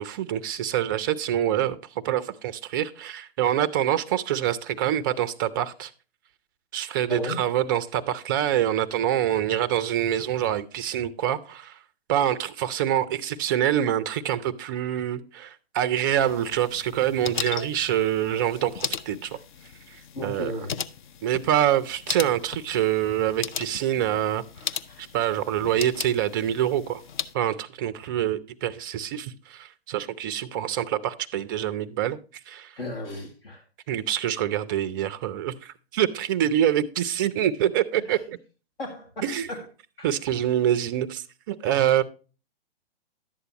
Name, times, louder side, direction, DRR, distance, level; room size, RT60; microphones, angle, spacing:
voice 1, 0.0-1.8 2.0-5.9 6.7-11.8 12.1-19.4 20.2-20.5 21.2-24.4 25.0-27.0 27.3-32.2 32.5-32.7 33.9-38.4 39.2-39.5 40.0-42.0, right 11 dB, 20° right, 0.4 m, -25 dB
sound 1, 16.2-27.3, left 8 dB, 50° left, 0.6 m, -37 dB
voice 2, 20.1-20.8 24.9-25.1 32.7-33.6 37.9-38.2 38.8-39.7 40.0-40.1, left 1 dB, 65° left, 2.0 m, -35 dB
11.0 x 7.9 x 2.9 m
hypercardioid pair, 130°, 31 cm